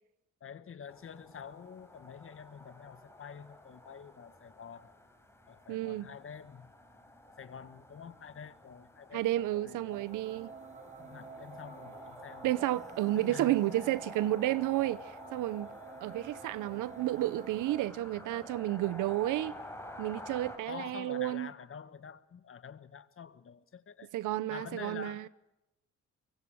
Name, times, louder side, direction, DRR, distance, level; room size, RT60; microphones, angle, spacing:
voice 1, 0.4-4.9 5.5-6.7 7.4-10.0 10.8-12.5 13.2-13.6 20.7-24.1 24.5-25.3, left 7 dB, 45° left, 1.4 m, -47 dB
sound 1, 0.9-20.6, left 1 dB, 10° left, 4.6 m, -50 dB
voice 2, 5.7-6.1 9.1-10.5 12.4-15.0 15.3-15.7 16.0-19.6 20.0-21.5 24.1-25.2, right 15 dB, 85° right, 0.8 m, -31 dB
sound 2, 9.9-17.9, right 5 dB, 25° right, 1.0 m, -50 dB
24.5 x 23.5 x 6.3 m
cardioid pair, 90°, 30 cm